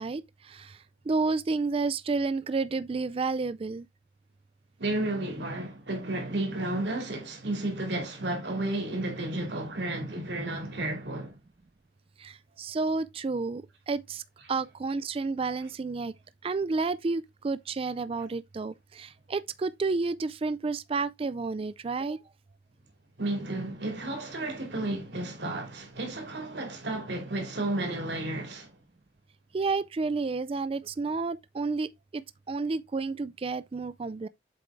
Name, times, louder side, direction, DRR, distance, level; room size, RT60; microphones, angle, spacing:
voice 1, 0.0-3.9 12.2-14.2 14.5-16.2 16.4-22.2 29.5-34.3, right 4 dB, 30° right, 0.4 m, -31 dB
voice 2, 4.8-11.4 23.2-28.7, right 2 dB, 65° right, 2.6 m, -32 dB
7.7 x 4.6 x 3.4 m
head